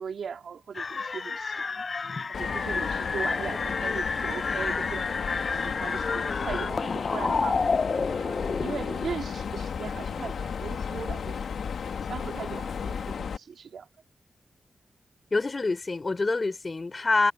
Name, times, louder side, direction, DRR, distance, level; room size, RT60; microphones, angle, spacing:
voice 1, 0.0-1.8 2.3-5.1 5.4-7.7 8.1-11.5 12.1-13.9, right 6 dB, 80° right, 2.7 m, -38 dB
sound 1, 0.7-9.1, left 4 dB, 55° left, 0.6 m, -30 dB
Mechanisms, 2.3-13.4, left 6 dB, 80° left, 1.5 m, -34 dB
voice 2, 15.3-17.3, left 3 dB, 40° left, 4.3 m, -26 dB
cardioid pair, 60°, 0 cm